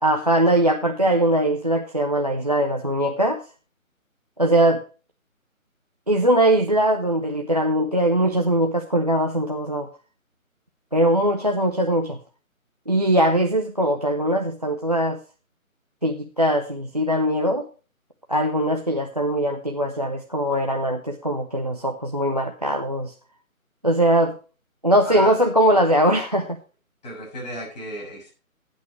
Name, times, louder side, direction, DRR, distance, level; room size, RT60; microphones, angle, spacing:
voice 1, 0.0-3.4 4.4-4.8 6.1-9.9 10.9-12.2 12.9-15.2 16.0-17.7 18.3-23.1 23.8-24.4 24.8-26.6, right 1 dB, 30° right, 5 dB, 0.6 m, -21 dB
voice 2, 25.0-25.5 27.0-28.3, left 1 dB, 30° left, -2 dB, 6.5 m, -34 dB
15.5 x 8.5 x 3.1 m, 0.35 s
figure-of-eight pair, 170°, 42 cm